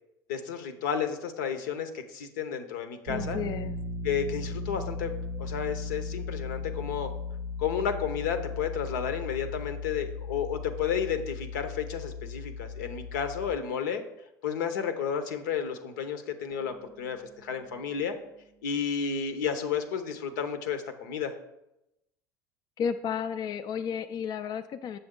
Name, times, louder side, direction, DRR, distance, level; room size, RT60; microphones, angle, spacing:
voice 1, 0.3-3.4 4.0-5.1 5.4-7.1 7.6-14.0 14.4-18.1 18.6-21.3, left 7 dB, 80° left, 8 dB, 0.8 m, -32 dB
voice 2, 3.1-3.8 22.8-25.0, left 7 dB, 45° left, 8 dB, 0.4 m, -32 dB
sound 1, 3.1-13.5, left 3 dB, 65° right, 0.5 m, -37 dB
Bass guitar, 16.5-20.2, right 1 dB, 5° left, 0.7 m, -56 dB
6.9 x 6.8 x 3.7 m, 0.90 s
hypercardioid pair, 75°, 10 cm